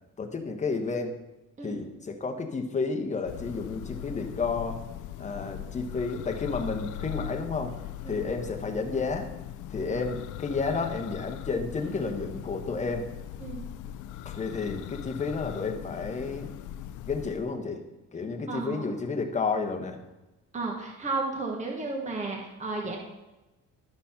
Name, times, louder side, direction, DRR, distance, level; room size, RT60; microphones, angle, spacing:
voice 1, 0.2-1.2 1.6-4.8 5.2-7.7 8.0-9.3 9.7-13.1 14.2-16.5 17.1-17.8 18.1-20.0, left 4 dB, 20° left, 4 dB, 1.0 m, -31 dB
Church bell, 3.3-17.6, left 12 dB, 70° left, 0.5 m, -40 dB
voice 2, 18.5-18.9 20.5-23.0, right 3 dB, 20° right, 0 dB, 1.2 m, -33 dB
11.5 x 4.1 x 5.7 m, 1.0 s
cardioid pair, 150°, 32 cm